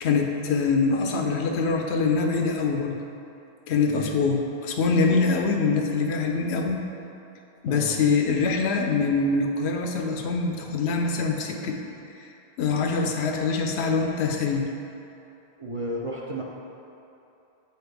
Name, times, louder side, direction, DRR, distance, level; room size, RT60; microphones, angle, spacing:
voice 1, 0.0-3.0 3.7-6.8 7.6-11.8 12.6-14.7, left 4 dB, 85° left, 2 dB, 0.9 m, -24 dB
voice 2, 3.9-4.3 7.7-8.0 15.6-16.4, right 1 dB, 45° right, -4 dB, 0.4 m, -33 dB
8.1 x 4.1 x 3.4 m, 2.8 s
omnidirectional pair, 1.1 m